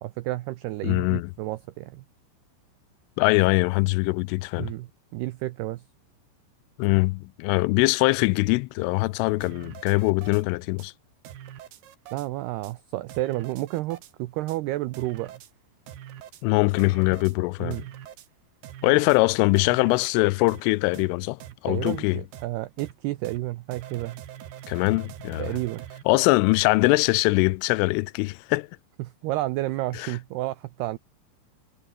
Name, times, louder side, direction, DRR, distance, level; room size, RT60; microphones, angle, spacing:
voice 1, 0.0-2.0 4.6-5.8 12.1-15.3 17.6-17.8 21.7-24.2 25.4-25.9 29.0-31.0, right 17 dB, 90° right, 2.3 m, -31 dB
voice 2, 0.8-1.3 3.2-4.7 6.8-10.9 16.4-17.8 18.8-22.2 24.7-25.5 26.1-28.7 29.9-30.2, left 23 dB, 85° left, 3.1 m, -22 dB
sound 1, 9.4-10.4 10.8-10.9 11.2-12.3 12.6-12.7 13.1-14.1 14.5-14.6 14.9-15.5 15.9-16.4 16.8-17.4 17.7-18.3 18.6-19.2 19.6-20.1 20.5-20.6 20.9-21.1 21.4-21.5 21.9-22.0 22.3-22.5 22.8-22.9 23.2-23.4 23.7-26.0, right 11 dB, 60° right, 3.6 m, -43 dB
omnidirectional pair, 5.7 m